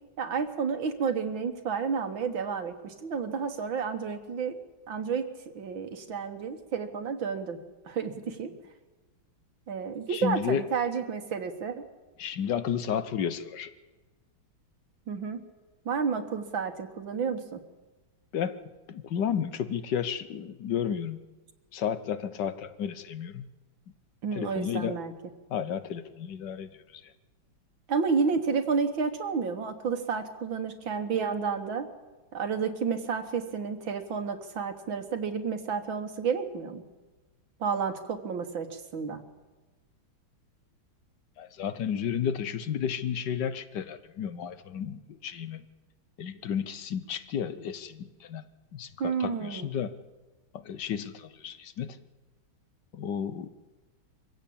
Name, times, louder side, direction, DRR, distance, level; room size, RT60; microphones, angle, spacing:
voice 1, 0.2-4.6 4.9-5.3 5.6-7.6 7.9-8.5 9.7-11.8 15.1-15.4 15.9-17.6 24.2-25.1 27.9-31.9 32.3-36.8 37.6-39.2 49.0-49.7, right 5 dB, 70° right, 7 dB, 2.2 m, -31 dB
voice 2, 10.1-10.6 12.2-13.7 18.3-18.6 18.9-21.2 21.7-23.5 24.3-25.0 25.5-27.1 41.4-45.6 46.2-48.4 48.7-50.0 50.5-52.0 52.9-53.5, left 8 dB, 60° left, 13 dB, 1.6 m, -32 dB
24.5 x 16.0 x 8.7 m, 1.2 s
omnidirectional pair, 2.2 m